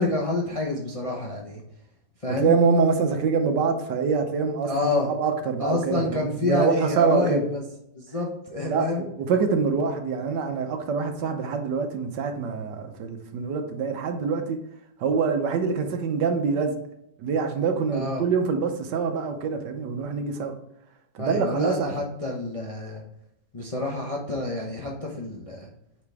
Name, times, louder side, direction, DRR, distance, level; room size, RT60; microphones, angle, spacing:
voice 1, 0.0-1.6 2.2-2.5 4.7-5.1 5.6-7.6 7.9-9.0 17.9-18.2 21.2-23.0 23.5-25.7, left 2 dB, 30° left, -1 dB, 0.6 m, -28 dB
voice 2, 2.3-4.9 5.2-7.5 8.7-14.6 15.0-16.8 17.2-20.6 21.1-21.9, right 5 dB, 70° right, 6 dB, 1.4 m, -25 dB
8.5 x 3.9 x 3.4 m, 0.79 s
omnidirectional pair, 2.0 m